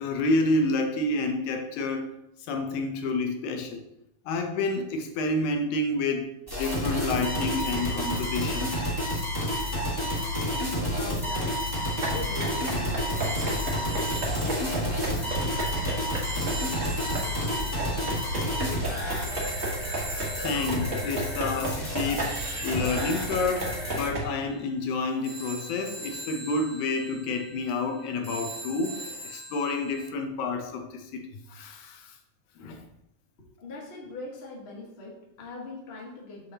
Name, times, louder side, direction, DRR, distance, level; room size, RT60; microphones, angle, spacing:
voice 1, 0.0-2.1 2.5-3.8 4.3-6.3 6.6-8.8 20.4-31.2 31.5-32.2 32.6-32.9, left 2 dB, 80° left, 4 dB, 2.1 m, -29 dB
sound 1, 6.5-24.1, equal, 25° left, 0.5 m, -30 dB
voice 2, 9.7-11.5 12.1-18.3 18.6-19.4 33.4-36.5, left 2 dB, 40° left, -2 dB, 0.9 m, -43 dB
sound 2, 11.8-24.2, right 1 dB, 60° right, 0.7 m, -34 dB
sound 3, 13.2-30.1, right 2 dB, 5° right, 0.9 m, -42 dB
7.0 x 6.6 x 2.8 m, 0.84 s
omnidirectional pair, 3.5 m